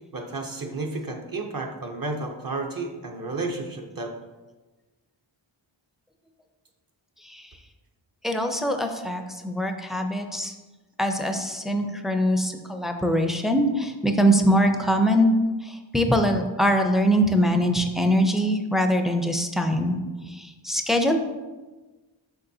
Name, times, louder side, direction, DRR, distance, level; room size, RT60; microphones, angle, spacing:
voice 1, 0.1-4.1, right 3 dB, 45° right, 3 dB, 0.7 m, -32 dB
voice 2, 8.2-10.5 11.0-15.3 15.6-20.0 20.3-21.2, equal, ahead, 5 dB, 0.4 m, -23 dB
6.9 x 5.4 x 2.7 m, 1.2 s
wide cardioid pair, 100°, 48 cm